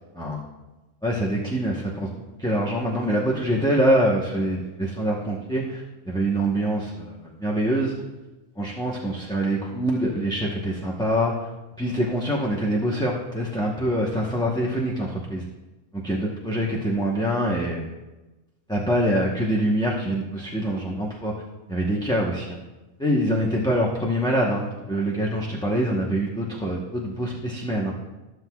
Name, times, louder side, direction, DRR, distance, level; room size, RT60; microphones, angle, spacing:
voice 1, 1.0-2.1 2.4-7.9 8.6-11.5 11.8-15.4 15.9-17.8 18.7-21.3 21.7-22.6 23.0-27.9, right 1 dB, 5° left, -4 dB, 0.8 m, -25 dB
14.0 x 7.8 x 2.3 m, 1.1 s
omnidirectional pair, 1.4 m